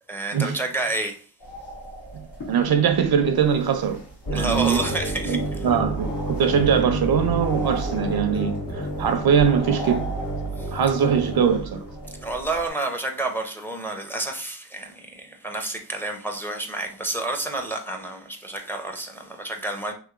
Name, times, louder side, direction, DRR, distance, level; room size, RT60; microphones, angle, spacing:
voice 1, 0.1-1.2 4.3-5.4 10.6-10.7 12.2-19.9, right 2 dB, 5° left, 0.5 m, -29 dB
sound 1, 1.4-12.7, right 1 dB, 85° left, 1.6 m, -39 dB
voice 2, 2.1-4.0 4.3-4.8 5.3-10.1 10.7-11.8, right 7 dB, 65° right, 0.5 m, -22 dB
sound 2, 4.2-12.3, right 1 dB, 45° left, 1.4 m, -30 dB
3.0 x 2.9 x 2.4 m
cardioid pair, 75°, 40 cm